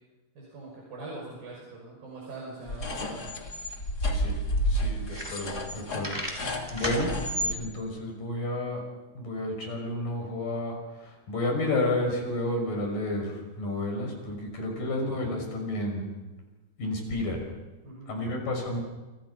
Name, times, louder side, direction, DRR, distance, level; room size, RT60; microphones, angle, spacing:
voice 1, 0.4-3.2 4.5-4.9 17.8-18.2, right 2 dB, 80° right, -3 dB, 7.6 m, -43 dB
sound 1, 2.7-7.6, equal, 30° left, 3.0 m, -30 dB
voice 2, 4.7-6.4 6.7-7.1 7.4-8.8 9.2-16.1 16.8-17.4 18.1-18.8, left 1 dB, 70° left, 2 dB, 7.5 m, -31 dB
sound 2, 5.0-5.7 6.0-7.0, equal, 5° right, 4.2 m, -35 dB
29.0 x 27.5 x 5.7 m, 1.1 s
omnidirectional pair, 4.0 m